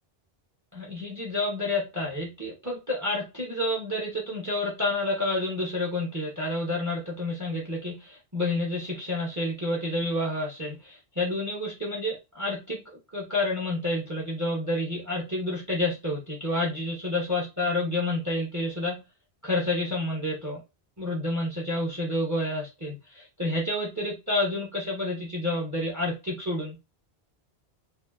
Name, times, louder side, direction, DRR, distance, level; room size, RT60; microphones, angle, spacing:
voice 1, 0.7-12.8 13.1-19.0 19.4-20.6 21.0-26.8, left 2 dB, 20° right, 0.7 m, -29 dB
2.6 x 2.6 x 2.3 m
omnidirectional pair, 1.1 m